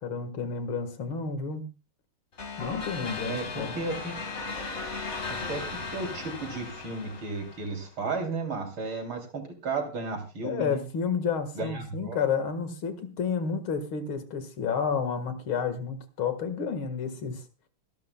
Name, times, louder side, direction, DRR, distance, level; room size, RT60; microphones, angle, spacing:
voice 1, 0.0-1.7 2.6-3.7 10.4-17.4, left 6 dB, 70° left, 9 dB, 2.5 m, -30 dB
sound 1, 2.4-7.9, left 4 dB, 30° left, 2.1 m, -37 dB
voice 2, 3.2-4.2 5.5-10.8 11.6-12.2, right 3 dB, 65° right, 5 dB, 3.9 m, -34 dB
25.5 x 11.5 x 2.3 m, 0.29 s
omnidirectional pair, 2.4 m